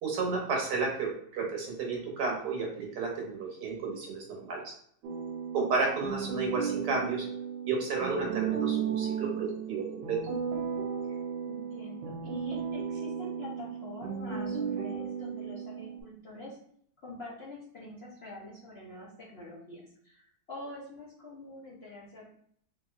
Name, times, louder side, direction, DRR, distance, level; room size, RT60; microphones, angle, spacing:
voice 1, 0.0-4.7 5.5-7.3 7.6-10.2, right 4 dB, 70° right, -1 dB, 1.4 m, -32 dB
sound 1, 5.0-16.0, right 7 dB, 90° right, 1.3 m, -35 dB
voice 2, 11.5-16.6 17.0-22.3, left 2 dB, 50° left, -7 dB, 0.8 m, -46 dB
3.6 x 2.6 x 2.3 m, 0.64 s
omnidirectional pair, 1.9 m